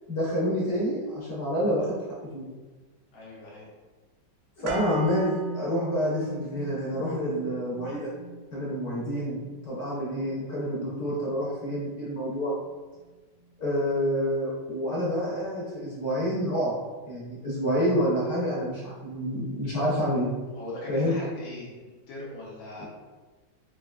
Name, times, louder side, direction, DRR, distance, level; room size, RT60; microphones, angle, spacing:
voice 1, 0.1-2.0 2.3-2.5 4.6-8.1 8.5-12.5 13.6-16.7 17.1-20.3 20.9-21.1 22.8-22.9, equal, 55° left, -6 dB, 1.3 m, -28 dB
voice 2, 3.1-3.7 20.5-22.9, left 1 dB, 75° left, -5 dB, 1.7 m, -40 dB
sound 1, 4.7-12.7 13.0-13.1, right 3 dB, 80° right, 1.3 m, -41 dB
4.2 x 3.0 x 2.3 m, 1.3 s
omnidirectional pair, 2.2 m